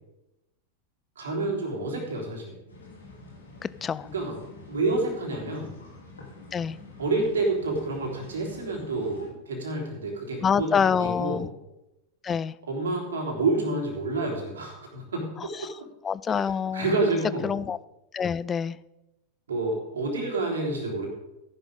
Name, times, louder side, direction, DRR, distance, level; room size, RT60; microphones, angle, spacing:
voice 1, 1.1-2.5 4.0-4.4 4.7-5.7 7.0-11.4 12.7-15.3 16.3-16.4 16.7-17.5 19.5-21.1, right 2 dB, 65° right, 0 dB, 3.5 m, -28 dB
sound 1, 2.7-9.3, left 3 dB, 70° left, 3.4 m, -48 dB
voice 2, 3.6-4.1 6.5-6.8 10.4-11.5 12.2-12.5 15.4-15.7 16.0-16.9 17.4-17.8 18.1-18.8, left 7 dB, 20° left, 18 dB, 0.3 m, -26 dB
14.0 x 11.0 x 3.8 m, 0.93 s
figure-of-eight pair, 90°, 0 cm